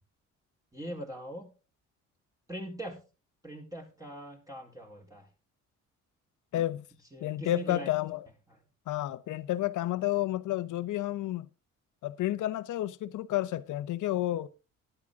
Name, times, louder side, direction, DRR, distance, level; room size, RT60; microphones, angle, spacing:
voice 1, 0.7-1.5 2.5-3.0 3.4-5.3 7.1-7.9 8.5-8.6, right 1 dB, 10° right, 3.9 m, -41 dB
voice 2, 6.5-6.8 7.2-8.2 8.9-11.5 12.0-14.5, left 14 dB, 80° left, 1.0 m, -31 dB
12.5 x 10.5 x 3.7 m
cardioid pair, 90°, 30 cm